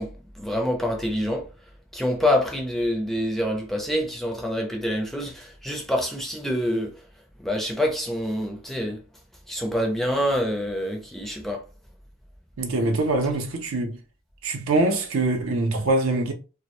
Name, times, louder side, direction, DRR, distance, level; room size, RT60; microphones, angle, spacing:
voice 1, 0.0-1.5 1.9-6.9 7.4-9.0 9.5-11.6, equal, ahead, 0.4 m, -26 dB
voice 2, 12.6-14.0 14.4-16.3, right 2 dB, 85° right, 0.5 m, -23 dB
2.1 x 2.0 x 2.9 m
head